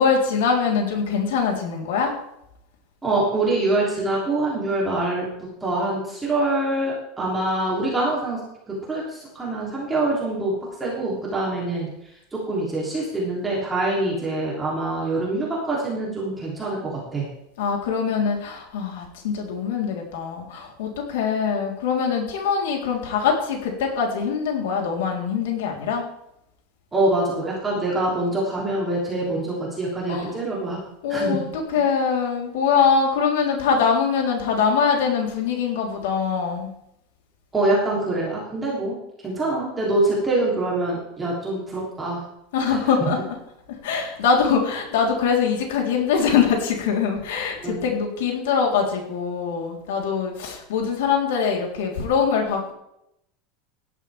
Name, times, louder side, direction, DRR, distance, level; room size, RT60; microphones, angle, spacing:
voice 1, 0.0-2.1 17.6-26.0 30.1-30.4 31.0-36.7 42.5-43.3 43.8-52.7, left 6 dB, 90° left, 0 dB, 3.9 m, -23 dB
voice 2, 3.0-5.3 5.6-8.4 8.7-10.5 10.8-11.9 12.3-17.3 26.9-30.8 31.1-31.4 37.5-38.9 39.2-42.2 42.7-43.1 47.6-47.8, right 2 dB, 10° right, -5 dB, 3.2 m, -25 dB
17.0 x 12.0 x 3.6 m, 0.79 s
supercardioid pair, 175°, 0 cm